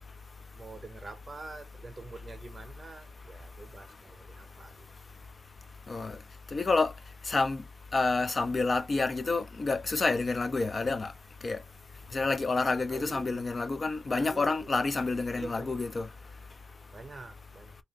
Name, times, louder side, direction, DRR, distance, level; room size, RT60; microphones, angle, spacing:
voice 1, 0.5-4.9 12.9-13.5 14.1-14.7 15.3-15.8 16.9-17.8, right 3 dB, 30° right, 0.8 m, -46 dB
voice 2, 6.5-6.9 7.3-7.6 7.9-11.1 11.4-11.6 12.1-16.1, left 3 dB, 35° left, 0.5 m, -28 dB
2.8 x 2.5 x 3.0 m
wide cardioid pair, 125°, 0 cm